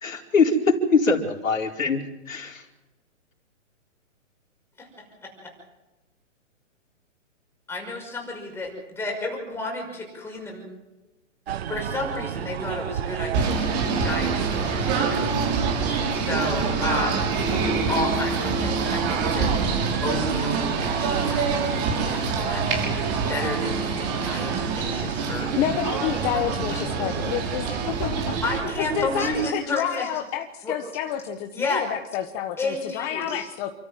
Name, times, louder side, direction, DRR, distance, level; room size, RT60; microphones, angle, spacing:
voice 1, 0.0-2.0 2.3-2.6, left 4 dB, 90° left, 0 dB, 4.7 m, -22 dB
voice 2, 7.7-10.6 11.5-15.2 15.8-25.5 28.4-30.1 30.6-30.8 31.5-31.9 32.6-33.3, left 2 dB, 5° left, 0 dB, 6.0 m, -32 dB
sound 1, 11.5-29.5, right 9 dB, 50° right, 1.4 m, -32 dB
Singing / Bird, 13.3-28.6, right 4 dB, 35° right, 6.8 m, -26 dB
sound 2, 19.6-25.1, right 5 dB, 80° right, 6.0 m, -38 dB
voice 3, 25.4-28.4 28.8-33.7, left 11 dB, 20° left, 6 dB, 1.2 m, -29 dB
29.0 x 14.0 x 7.7 m, 1.1 s
hypercardioid pair, 150°, 39 cm